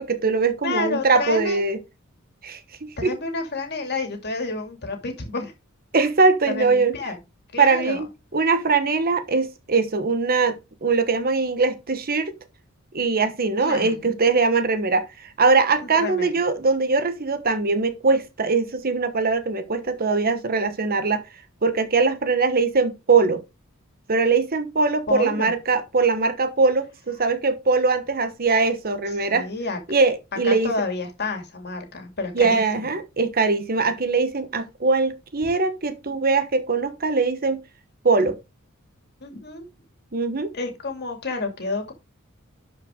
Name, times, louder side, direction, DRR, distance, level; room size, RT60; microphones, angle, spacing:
voice 1, 0.0-1.8 2.4-3.1 5.9-7.0 7.6-8.1 8.3-12.3 12.9-15.1 15.4-21.2 21.6-23.4 24.1-29.5 29.9-30.7 32.3-37.6 38.0-38.4 40.1-40.5, right 4 dB, 45° right, 1.1 m, -21 dB
voice 2, 0.6-1.6 3.0-5.5 6.5-7.2 7.5-8.0 13.6-14.1 15.8-16.3 25.1-25.5 29.3-29.8 30.4-32.9 35.4-35.5 39.2-39.7 40.5-41.9, left 3 dB, 50° left, 2.5 m, -30 dB
11.5 x 5.0 x 3.7 m
head